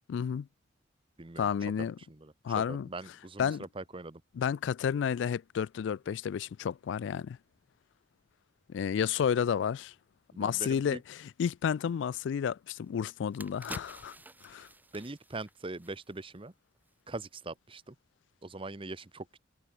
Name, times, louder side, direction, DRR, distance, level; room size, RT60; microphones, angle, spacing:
voice 1, 0.1-0.5 1.4-1.9 2.4-2.9 3.4-3.6 4.3-7.4 8.7-9.9 10.4-14.2 14.4-14.7, left 7 dB, 65° left, 0.3 m, -31 dB
voice 2, 1.2-1.5 2.1-4.2 10.3-11.0 14.9-16.5 17.1-17.9 18.4-19.4, right 2 dB, 25° right, 0.9 m, -42 dB
sound 1, 12.7-12.8 13.2-16.4 16.7-16.9, right 2 dB, 10° right, 2.0 m, -49 dB
head